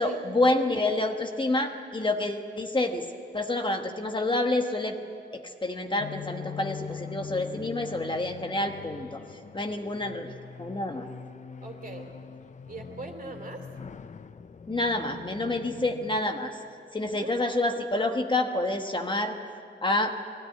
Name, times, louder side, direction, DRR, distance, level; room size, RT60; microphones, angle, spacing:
voice 1, 0.0-3.1 3.3-5.0 5.3-9.2 9.5-10.3 10.6-11.1 14.7-16.6 16.9-19.4 19.8-20.1, left 2 dB, 25° left, 4 dB, 1.2 m, -28 dB
sound 1, 6.0-16.2, left 7 dB, 40° left, 0.6 m, -42 dB
voice 2, 11.6-12.2 12.7-13.7 17.1-17.4, right 3 dB, 45° right, 3 dB, 2.8 m, -41 dB
20.5 x 16.0 x 9.6 m, 2.5 s
wide cardioid pair, 145°, 19 cm